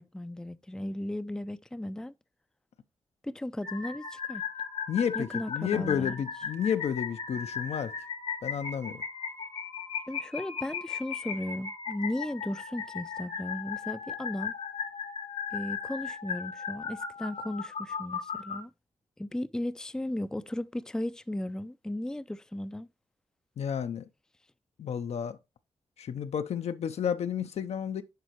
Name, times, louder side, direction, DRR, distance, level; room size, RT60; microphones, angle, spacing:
voice 1, 0.0-2.1 3.2-4.4 5.1-6.1 10.1-14.5 15.5-18.7 19.2-22.9, left 1 dB, 5° left, 0.4 m, -36 dB
sound 1, 3.6-18.6, left 6 dB, 85° left, 1.5 m, -37 dB
voice 2, 4.9-7.9 8.4-9.0 23.6-24.1 24.8-25.4 26.0-28.0, left 8 dB, 65° left, 0.6 m, -31 dB
10.5 x 4.1 x 3.0 m
supercardioid pair, 45°, 12 cm